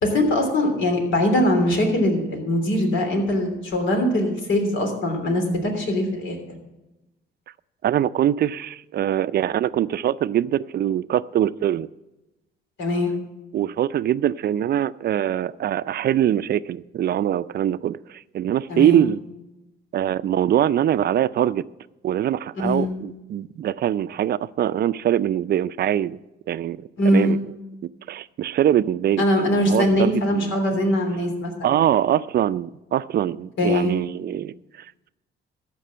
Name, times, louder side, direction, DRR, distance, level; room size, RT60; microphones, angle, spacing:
voice 1, 0.0-6.4 12.8-13.1 18.7-19.0 22.6-22.9 27.0-27.4 29.2-31.8 33.6-33.9, left 1 dB, 75° left, 3.1 m, -21 dB
voice 2, 7.8-11.9 13.5-19.2 19.9-21.7 22.0-26.2 26.5-27.4 28.1-29.2 29.5-30.5 31.6-35.1, right 11 dB, 55° right, 0.4 m, -23 dB
14.5 x 5.3 x 7.5 m
cardioid pair, 90°, 20 cm